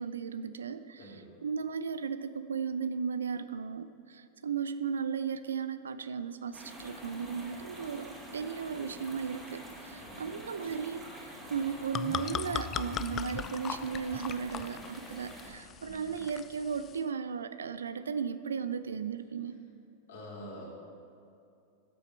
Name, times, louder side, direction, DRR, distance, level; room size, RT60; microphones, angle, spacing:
voice 1, 0.0-11.0 11.5-19.6, right 6 dB, 70° right, 12 dB, 0.4 m, -36 dB
voice 2, 1.0-1.4 10.0-10.2 15.8-16.1 20.1-20.6, left 1 dB, 60° left, -4 dB, 2.9 m, -47 dB
sound 1, 6.5-15.5, equal, 10° right, 2.6 m, -47 dB
sound 2, 11.6-17.0, left 9 dB, 30° left, 0.3 m, -39 dB
13.5 x 7.9 x 4.3 m, 2.6 s
figure-of-eight pair, 90°, 0 cm